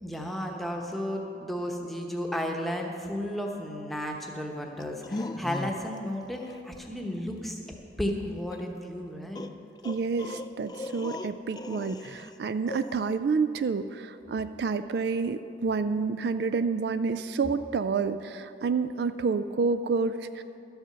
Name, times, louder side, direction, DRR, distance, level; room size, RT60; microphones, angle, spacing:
voice 1, 0.0-7.6 8.0-9.5, equal, ahead, 1 dB, 1.0 m, -33 dB
sound 1, 4.8-6.0 6.3-6.6 8.5-8.6 9.3-12.4 12.7-13.2, left 2 dB, 20° left, 0.3 m, -38 dB
voice 2, 9.8-20.4, right 4 dB, 65° right, 12 dB, 0.3 m, -29 dB
12.5 x 8.0 x 6.8 m, 2.8 s
head